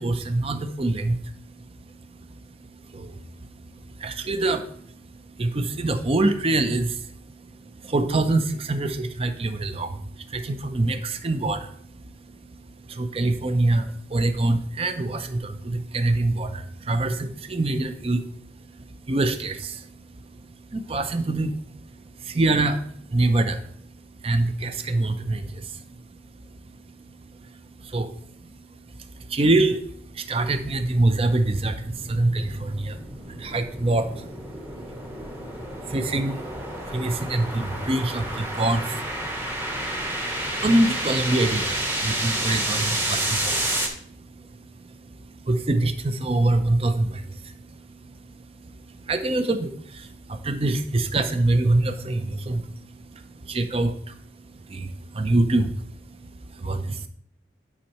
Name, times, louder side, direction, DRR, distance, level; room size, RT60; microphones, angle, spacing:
voice 1, 0.0-57.1, right 2 dB, 30° right, 9 dB, 0.6 m, -26 dB
sound 1, 30.6-43.9, right 1 dB, 10° right, 1.0 m, -30 dB
10.0 x 5.4 x 3.0 m, 0.64 s
head